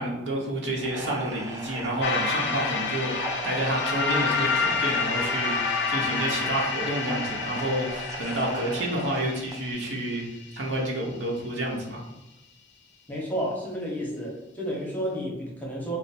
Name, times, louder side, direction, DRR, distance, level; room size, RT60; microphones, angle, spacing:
voice 1, 0.0-10.3 10.5-12.0, right 1 dB, 80° right, -1 dB, 0.9 m, -29 dB
sound 1, 0.8-9.7, right 1 dB, 15° right, 0.4 m, -37 dB
sound 2, 2.0-10.5, left 5 dB, 65° left, 0.4 m, -29 dB
voice 2, 13.1-16.0, equal, 10° left, -4 dB, 0.8 m, -31 dB
3.2 x 2.1 x 4.1 m, 0.95 s
head